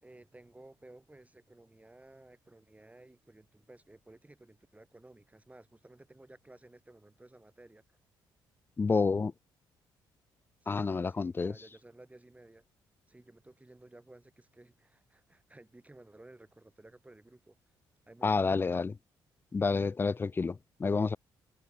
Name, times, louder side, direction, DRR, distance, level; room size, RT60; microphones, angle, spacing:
voice 1, 0.0-7.8 10.6-12.6 13.1-17.6 18.1-18.8, right 2 dB, 15° right, 3.3 m, -56 dB
voice 2, 8.8-9.3 10.7-11.5 18.2-18.9 19.5-21.2, left 4 dB, 25° left, 0.3 m, -29 dB
supercardioid pair, 60°, 10 cm